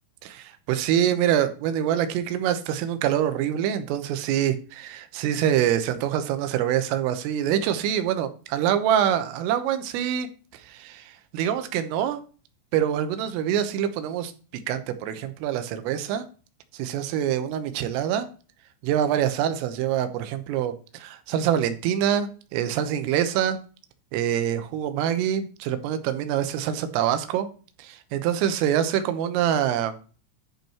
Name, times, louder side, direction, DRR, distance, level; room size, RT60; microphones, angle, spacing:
voice 1, 0.2-10.3 10.5-12.2 12.7-14.3 14.7-16.2 16.7-18.3 18.8-23.6 24.1-27.5 27.8-30.0, right 10 dB, 85° right, 10 dB, 3.6 m, -25 dB
11.0 x 5.5 x 4.4 m, 0.37 s
omnidirectional pair, 5.8 m